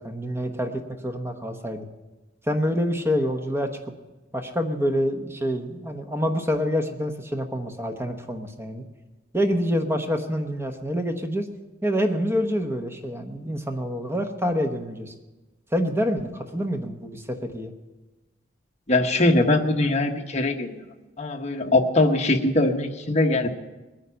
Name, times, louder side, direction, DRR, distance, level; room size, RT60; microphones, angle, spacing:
voice 1, 0.0-1.9 2.4-3.7 4.3-8.8 9.3-11.5 11.8-15.1 15.7-17.7, equal, 15° right, 5 dB, 1.0 m, -26 dB
voice 2, 18.9-20.9 21.2-23.5, left 2 dB, 35° left, 3 dB, 1.1 m, -21 dB
20.5 x 9.5 x 5.7 m, 1.2 s
head